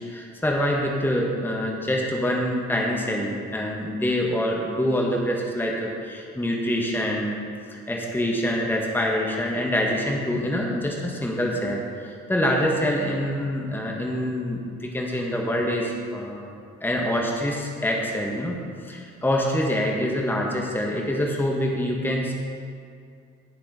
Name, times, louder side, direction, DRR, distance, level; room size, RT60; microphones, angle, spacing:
voice 1, 0.1-7.4 7.7-16.5 16.8-18.6 18.9-22.3, equal, 5° left, -1 dB, 1.4 m, -25 dB
17.5 x 6.5 x 3.9 m, 2.2 s
figure-of-eight pair, 50°, 41 cm